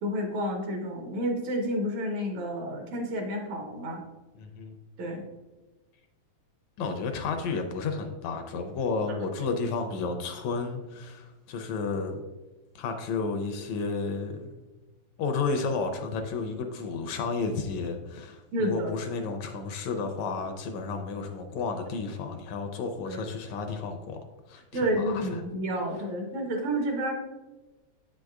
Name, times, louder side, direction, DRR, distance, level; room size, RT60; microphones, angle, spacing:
voice 1, 0.0-4.0 5.0-5.3 18.5-18.9 23.1-23.2 24.7-27.1, equal, 75° right, 2 dB, 2.4 m, -30 dB
voice 2, 4.4-4.8 6.8-12.2 12.8-14.5 15.2-24.2 24.5-25.4, left 4 dB, 80° left, 5 dB, 1.8 m, -32 dB
8.2 x 6.3 x 2.4 m, 1.1 s
omnidirectional pair, 3.3 m